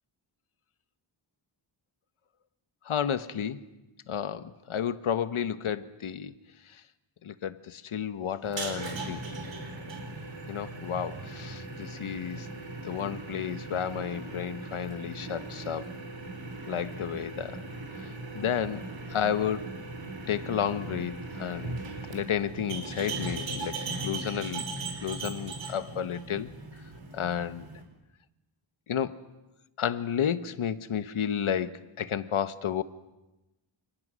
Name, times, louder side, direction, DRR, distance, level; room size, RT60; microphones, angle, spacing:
voice 1, 2.8-3.6 4.1-6.3 6.7-6.8 7.2-9.2 10.5-12.5 12.8-15.9 16.7-17.6 18.0-19.7 20.3-21.8 22.1-24.7 25.0-26.5 27.1-27.6 28.9-29.2 29.8-32.8, left 8 dB, 90° left, 1.2 m, -32 dB
sound 1, 8.4-27.8, right 3 dB, 65° right, 4.7 m, -39 dB
29.0 x 28.5 x 6.4 m
wide cardioid pair, 180°, 48 cm